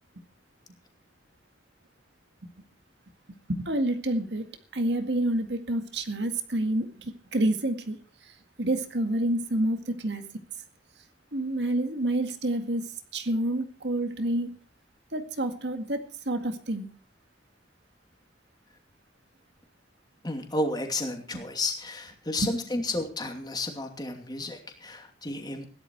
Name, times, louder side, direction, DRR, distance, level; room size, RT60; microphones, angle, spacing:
voice 1, 3.5-4.5 4.7-8.0 8.6-10.2 11.3-12.9 13.1-14.5 15.1-16.9 22.4-22.5, right 1 dB, 70° right, 7 dB, 2.0 m, -28 dB
voice 2, 20.2-25.7, left 2 dB, 25° left, 4 dB, 2.7 m, -32 dB
17.0 x 12.0 x 4.6 m, 0.40 s
head